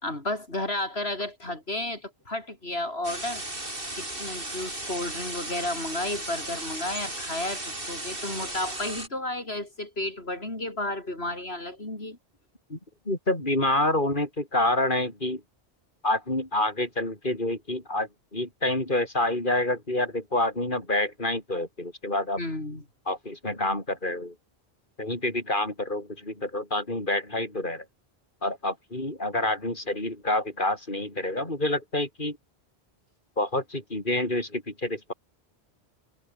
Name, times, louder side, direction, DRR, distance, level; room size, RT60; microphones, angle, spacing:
voice 1, 0.0-3.4 3.9-12.2 22.4-22.8, left 1 dB, 70° left, 5.8 m, -32 dB
sound 1, 3.0-9.1, right 1 dB, 60° right, 6.1 m, -35 dB
voice 2, 13.1-15.4 16.0-22.4 23.1-24.3 25.0-27.8 28.4-32.4 33.4-35.1, left 1 dB, 50° left, 6.4 m, -28 dB
omnidirectional pair, 1.1 m